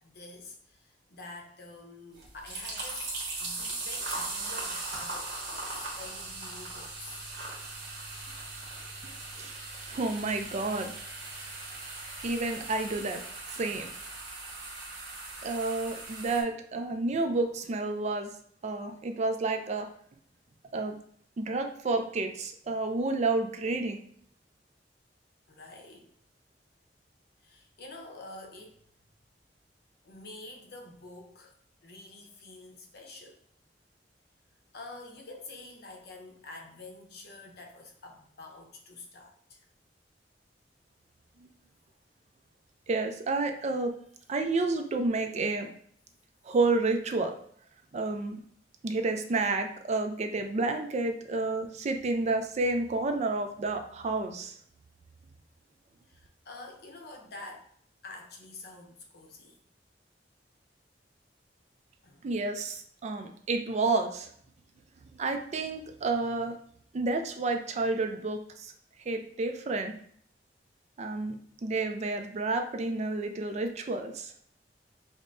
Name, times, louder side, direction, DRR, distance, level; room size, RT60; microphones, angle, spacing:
voice 1, 0.0-3.1 3.4-7.3 25.5-26.1 27.4-28.8 30.0-31.5 31.8-33.4 34.7-39.6 56.1-57.7 58.0-59.6 62.0-62.2, left 2 dB, 65° left, 2 dB, 0.7 m, -47 dB
soda - pour, 2.1-16.4, right 2 dB, 70° right, 1.1 m, -39 dB
voice 2, 9.9-10.9 12.2-13.2 13.5-13.9 15.4-18.3 18.6-19.9 20.7-21.0 21.4-24.0 41.4-41.5 42.9-43.9 44.3-45.7 46.4-47.3 47.9-48.4 48.8-54.6 62.2-64.3 65.1-66.6 66.9-68.7 69.1-69.9 71.0-74.3, right 3 dB, 40° right, 6 dB, 0.4 m, -30 dB
5.1 x 2.1 x 2.6 m, 0.62 s
head